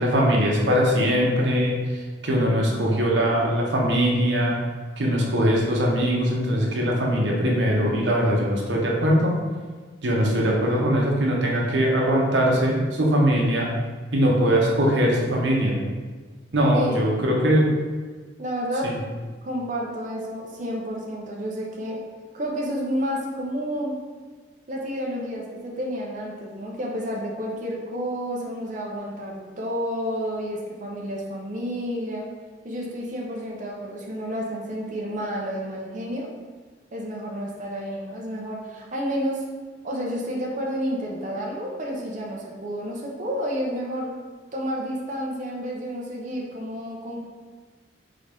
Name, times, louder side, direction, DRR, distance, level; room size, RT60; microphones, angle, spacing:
voice 1, 0.0-4.6 5.0-9.4 10.0-13.7 14.1-15.8 16.5-17.7 18.8-19.0, equal, 80° right, -2 dB, 0.9 m, -21 dB
voice 2, 18.4-18.9 19.4-22.0 22.3-24.0 24.7-32.3 32.6-36.3 36.9-39.4 39.8-44.2 44.5-47.2, equal, 45° right, -2 dB, 0.8 m, -30 dB
3.9 x 3.9 x 3.5 m, 1.4 s
head